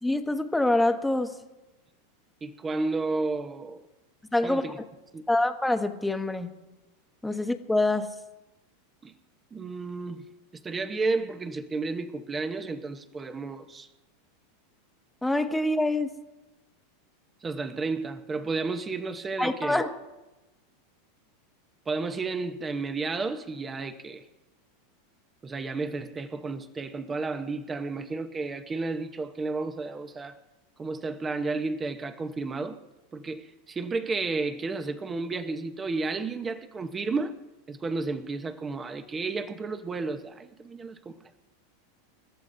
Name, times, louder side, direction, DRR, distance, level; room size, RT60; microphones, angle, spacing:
voice 1, 0.0-1.4 4.3-4.6 5.3-6.5 7.2-8.1 15.2-16.2 19.4-20.0, left 2 dB, 5° left, 1.2 m, -25 dB
voice 2, 2.4-3.8 4.4-4.7 5.1-5.2 9.0-9.1 9.5-13.9 17.4-19.8 21.9-24.3 25.4-30.4 30.8-32.8 33.1-37.4 37.7-41.2, right 3 dB, 20° right, 1.0 m, -32 dB
28.5 x 13.5 x 2.7 m
supercardioid pair, 125°, 0 cm